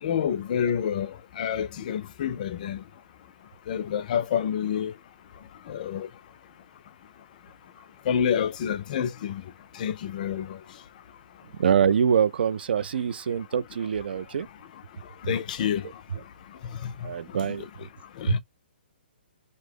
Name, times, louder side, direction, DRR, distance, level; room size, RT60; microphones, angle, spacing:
voice 1, 0.0-2.9 3.7-4.9 5.6-6.1 8.0-10.8 14.1-14.2 15.0-16.3 16.6-17.7 18.1-18.4, left 8 dB, 45° left, 0.4 m, -29 dB
voice 2, 11.6-14.5 17.0-17.7 18.3-18.4, right 7 dB, 70° right, 0.3 m, -24 dB
2.6 x 2.0 x 3.3 m
hypercardioid pair, 140°, 6 cm